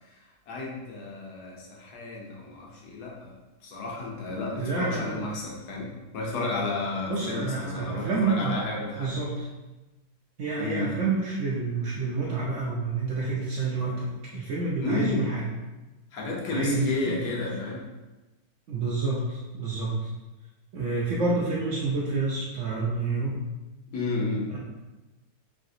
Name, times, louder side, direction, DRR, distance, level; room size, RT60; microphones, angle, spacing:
voice 1, 0.5-3.3 3.6-9.1 10.6-11.0 14.8-15.3 16.1-17.8 23.9-24.5, left 3 dB, 75° left, -3 dB, 1.3 m, -32 dB
voice 2, 4.5-5.3 7.1-8.7 9.0-9.5 10.4-15.4 16.5-17.3 18.7-20.1 20.7-23.4 24.5-24.6, right 3 dB, 65° right, -5 dB, 0.8 m, -28 dB
3.2 x 2.8 x 2.6 m, 1.1 s
omnidirectional pair, 1.7 m